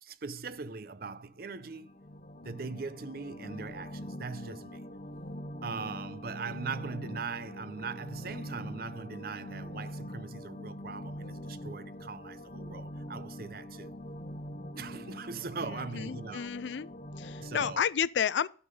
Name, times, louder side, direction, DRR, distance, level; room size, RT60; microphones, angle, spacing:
voice 1, 0.0-1.9 2.4-4.9 5.6-13.9 14.7-16.5 17.4-17.8, right 4 dB, 55° right, 0.6 m, -40 dB
sound 1, 1.4-17.8, equal, 45° left, 0.8 m, -43 dB
voice 2, 15.6-16.9 17.2-18.5, left 8 dB, 85° left, 0.4 m, -31 dB
11.5 x 5.7 x 5.3 m
head